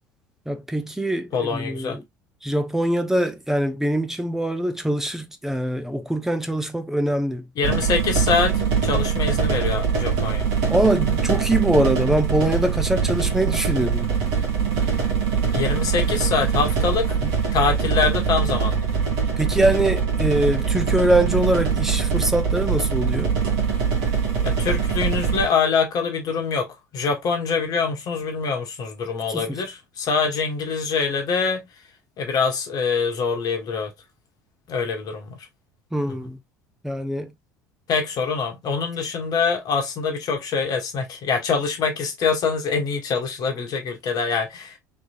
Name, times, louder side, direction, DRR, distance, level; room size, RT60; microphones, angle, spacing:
voice 1, 0.5-2.0 2.4-7.7 10.7-14.1 17.2-17.3 19.4-23.3 29.3-29.6 35.9-36.4 36.8-37.3, right 1 dB, 5° right, 0.7 m, -23 dB
voice 2, 1.3-2.0 7.6-10.5 15.5-17.2 17.5-18.9 24.4-31.6 32.2-33.9 34.7-35.4 37.9-44.8, left 5 dB, 40° left, 1.3 m, -24 dB
sound 1, 7.6-25.5, right 6 dB, 55° right, 1.5 m, -23 dB
3.6 x 3.1 x 2.5 m
figure-of-eight pair, 65°, 9 cm